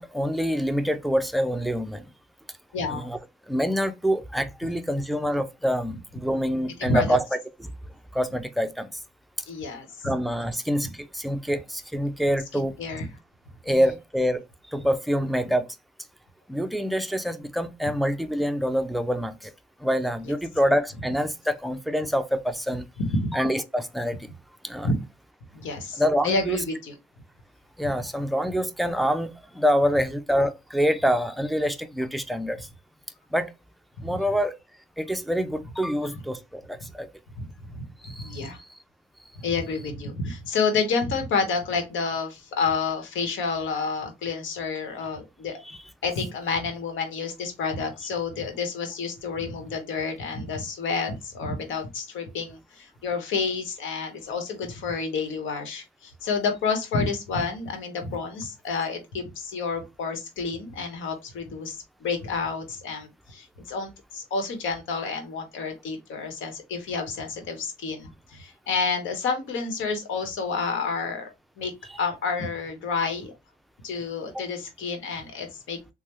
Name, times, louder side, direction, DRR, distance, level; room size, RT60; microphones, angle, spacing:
voice 1, 0.0-2.1 2.9-3.2 3.5-7.2 7.6-7.7 8.1-8.9 10.0-12.8 13.6-14.4 14.7-15.7 16.5-19.5 19.8-22.9 23.3-24.3 24.6-24.9 26.0-26.6 27.8-32.7 33.3-33.5 34.0-34.5 35.0-37.1 38.0-38.5 45.6-45.8, equal, ahead, 0.4 m, -26 dB
voice 2, 2.7-3.1 6.8-7.2 9.5-10.1 12.5-13.1 13.7-13.8 23.0-23.4 24.8-25.0 25.5-26.9 34.1-34.2 36.0-36.1 37.4-38.6 39.4-45.6 46.0-71.3 71.6-71.7 72.0-73.3 73.8-75.8, left 4 dB, 80° left, 1.0 m, -29 dB
3.2 x 2.1 x 3.0 m
cardioid pair, 90°, 20 cm